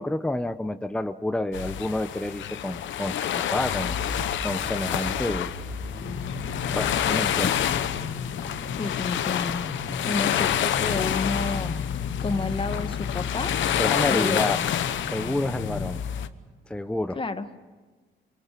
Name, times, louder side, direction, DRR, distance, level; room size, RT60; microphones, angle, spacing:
voice 1, 0.0-4.0 4.4-5.5 6.7-7.7 13.8-14.6 15.1-16.0 16.7-17.2, left 1 dB, 5° left, 10 dB, 0.8 m, -29 dB
sound 1, 1.5-16.3, left 10 dB, 75° left, 1.0 m, -28 dB
sound 2, 3.2-9.6, right 4 dB, 50° right, 1.4 m, -42 dB
sound 3, 6.0-15.9, left 5 dB, 55° left, 2.5 m, -35 dB
voice 2, 8.8-9.7 10.0-11.8 12.2-13.6 14.1-14.4 17.1-17.5, left 3 dB, 25° left, 9 dB, 1.5 m, -30 dB
25.0 x 23.5 x 7.6 m, 1.3 s
cardioid pair, 90°, 20 cm